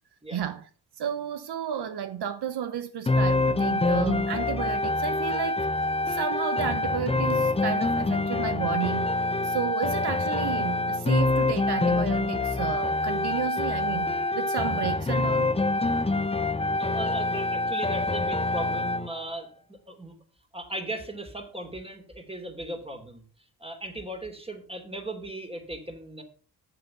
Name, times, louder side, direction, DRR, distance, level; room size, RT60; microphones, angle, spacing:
voice 1, 0.3-0.6 1.0-5.7 6.1-9.2 9.4-15.5, right 9 dB, 75° right, 0.9 m, -32 dB
sound 1, 3.1-19.1, left 2 dB, 15° left, 0.7 m, -26 dB
voice 2, 16.8-20.1 20.5-23.3 23.6-26.2, right 1 dB, 15° right, 3.1 m, -37 dB
8.1 x 7.3 x 5.9 m
cardioid pair, 60°, 40 cm